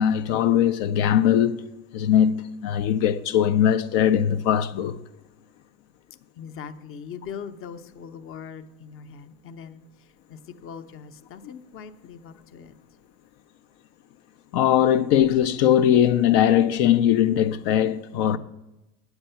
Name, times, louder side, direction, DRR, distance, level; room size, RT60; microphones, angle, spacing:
voice 1, 0.0-1.6 1.9-5.0 14.5-18.4, left 10 dB, 75° left, 0.6 m, -20 dB
voice 2, 6.4-12.7, left 7 dB, 35° left, 0.7 m, -41 dB
8.9 x 8.0 x 5.6 m
supercardioid pair, 110°, 36 cm